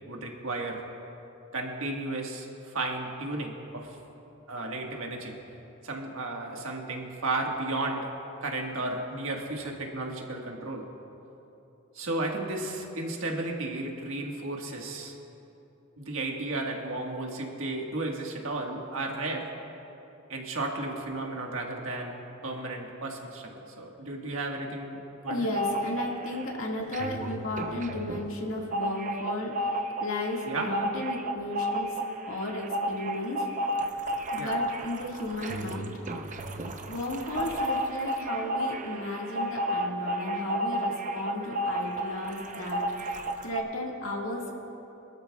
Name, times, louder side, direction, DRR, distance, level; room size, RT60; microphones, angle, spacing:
voice 1, 0.1-0.8 1.5-4.0 4.5-5.4 5.8-8.1 8.4-10.9 11.9-15.1 16.0-19.5 20.3-25.5 30.4-30.7 34.4-34.6, right 2 dB, 75° right, 0 dB, 1.6 m, -34 dB
voice 2, 25.3-29.7 30.0-32.0 32.3-33.5 34.3-35.9 36.9-44.5, left 1 dB, 75° left, -1 dB, 1.9 m, -34 dB
sound 1, 25.3-26.5 26.8-43.6, equal, 35° right, 0.7 m, -32 dB
23.5 x 13.0 x 2.4 m, 2.9 s
head